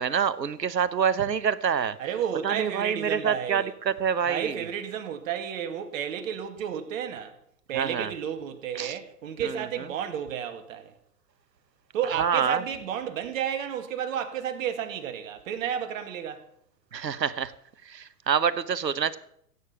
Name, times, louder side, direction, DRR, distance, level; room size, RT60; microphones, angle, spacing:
voice 1, 0.0-2.0 2.4-4.7 7.7-8.1 8.7-8.9 9.4-9.9 12.2-12.6 16.9-17.5 17.8-19.2, right 7 dB, 90° right, 1.1 m, -27 dB
voice 2, 2.0-3.7 4.2-7.4 7.7-10.9 11.9-16.4, right 9 dB, 55° right, 2.1 m, -32 dB
16.5 x 8.8 x 5.9 m
hypercardioid pair, 115°, 48 cm